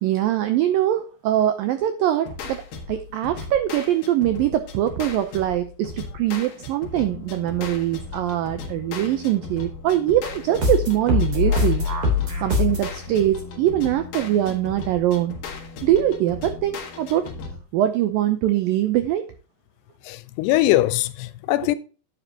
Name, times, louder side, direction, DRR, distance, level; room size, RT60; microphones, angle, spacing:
voice 1, 0.0-2.6 2.9-11.9 12.4-15.4 15.8-17.3 17.7-19.3, right 12 dB, 90° right, 2.0 m, -22 dB
sound 1, 2.3-17.6, left 4 dB, 60° left, 3.1 m, -37 dB
sound 2, 10.5-12.9, left 4 dB, 30° right, 3.9 m, -22 dB
voice 2, 20.0-21.8, left 15 dB, 80° left, 2.5 m, -21 dB
10.5 x 9.4 x 2.9 m
omnidirectional pair, 5.0 m